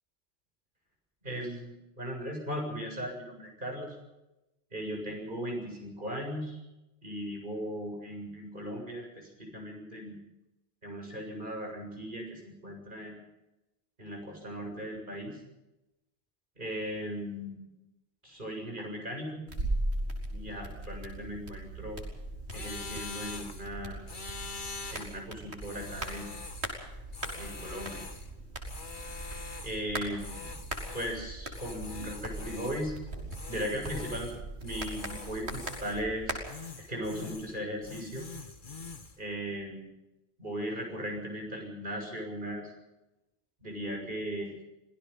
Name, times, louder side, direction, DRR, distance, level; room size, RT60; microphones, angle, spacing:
voice 1, 1.2-4.0 4.7-6.6 7.0-10.2 10.8-13.2 14.0-15.4 16.6-17.7 18.2-19.5 20.3-22.0 22.5-24.0 24.9-26.3 27.4-28.0 29.6-30.5 30.9-33.0 33.5-36.4 36.9-38.3 39.2-39.9 40.4-42.7 43.6-44.5, equal, 50° right, 1 dB, 7.6 m, -37 dB
sound 1, 19.5-36.4, right 1 dB, 90° right, 4.8 m, -39 dB
sound 2, 22.5-23.7 24.1-25.2 25.6-26.7 27.1-28.3 28.6-29.8 30.2-31.2 31.5-32.9 33.3-34.4 34.6-36.1 36.4-37.6 37.8-39.2, left 4 dB, 50° left, 1.8 m, -44 dB
26.0 x 18.0 x 5.9 m, 0.94 s
omnidirectional pair, 1.1 m